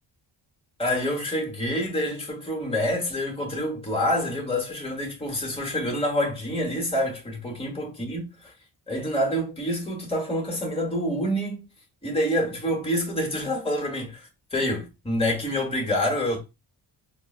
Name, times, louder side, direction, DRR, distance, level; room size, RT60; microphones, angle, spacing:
voice 1, 0.8-8.5 8.9-11.6 12.0-16.4, equal, 10° left, 1.3 m, -27 dB
4.3 x 2.1 x 2.4 m
cardioid pair, 70°, 47 cm